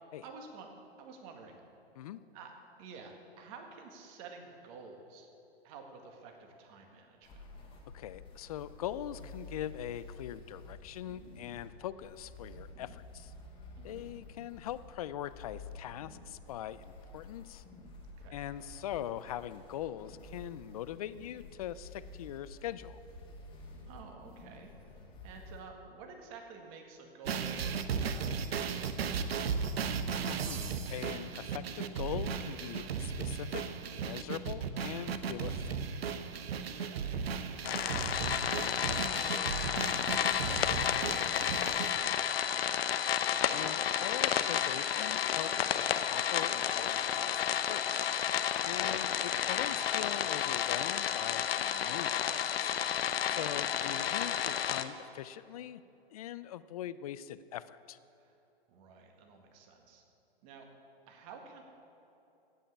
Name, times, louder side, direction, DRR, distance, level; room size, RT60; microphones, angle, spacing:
voice 1, 0.2-0.7 1.0-1.6 2.3-2.5 2.8-5.3 5.6-7.4 13.8-14.0 18.2-18.4 23.9-29.9 36.7-43.2 49.6-49.9 53.2-53.6 58.1-58.4 58.7-60.0 60.4-60.7 61.1-61.6, right 4 dB, 35° right, 3 dB, 1.7 m, -52 dB
sound 1, 7.2-25.6, left 2 dB, 15° left, 1.8 m, -50 dB
voice 2, 7.9-13.3 13.8-17.6 18.3-23.0 30.3-33.6 34.0-35.8 43.5-48.0 48.6-52.7 53.3-55.8 56.1-58.0, left 11 dB, 40° left, 15 dB, 0.4 m, -42 dB
sound 2, 27.2-42.0, right 6 dB, 70° right, 1.0 m, -36 dB
sound 3, 37.6-54.8, left 9 dB, 70° left, 0.8 m, -31 dB
16.0 x 5.7 x 8.4 m, 2.9 s
hypercardioid pair, 145°, 31 cm